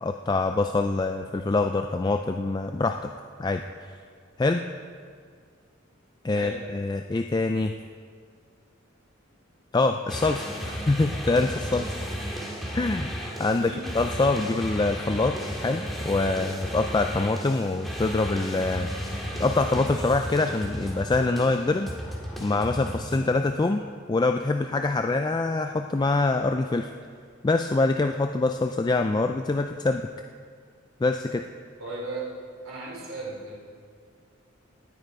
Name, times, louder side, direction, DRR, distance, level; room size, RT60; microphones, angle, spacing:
voice 1, 0.0-3.1 3.4-3.6 4.4-4.6 6.2-7.7 9.7-11.9 12.7-13.1 13.4-18.9 19.4-21.9 22.4-23.8 24.1-26.9 27.4-30.1 31.0-31.5, left 3 dB, 20° left, 6 dB, 0.3 m, -25 dB
sound 1, 10.1-23.2, equal, ahead, 2.0 m, -34 dB
voice 2, 31.8-32.3 32.6-33.6, right 3 dB, 90° right, -4 dB, 3.2 m, -36 dB
19.0 x 9.1 x 4.7 m, 2.1 s
head